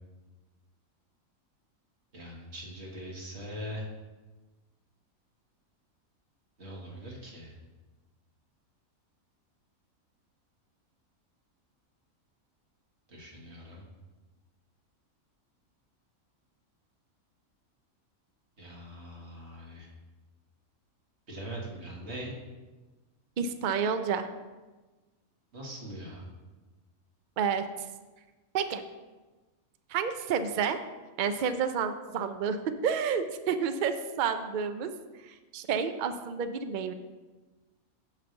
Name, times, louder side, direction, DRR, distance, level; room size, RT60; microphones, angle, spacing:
voice 1, 2.1-3.9 6.6-7.6 13.1-13.8 18.6-19.9 21.3-22.3 25.5-26.3, equal, 50° right, -3 dB, 2.0 m, -41 dB
voice 2, 23.4-24.3 27.4-27.9 28.5-28.8 29.9-30.8 31.2-34.9 35.2-36.9, right 6 dB, 85° right, 9 dB, 0.4 m, -30 dB
9.0 x 3.3 x 6.8 m, 1.2 s
omnidirectional pair, 1.5 m